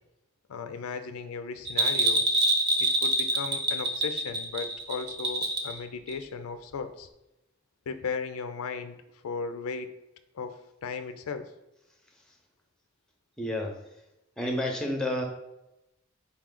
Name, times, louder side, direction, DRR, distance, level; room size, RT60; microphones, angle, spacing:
voice 1, 0.5-2.2 2.8-7.1 7.9-9.0 9.2-9.9 10.3-10.6 10.8-11.5, left 5 dB, 80° left, 9 dB, 0.4 m, -36 dB
Bell, 1.7-5.8 6.1-6.2, right 2 dB, 50° right, 0.7 m, -25 dB
voice 2, 13.4-13.8 14.4-15.2, left 1 dB, 5° left, 2 dB, 0.6 m, -30 dB
4.1 x 3.1 x 3.7 m, 0.90 s
head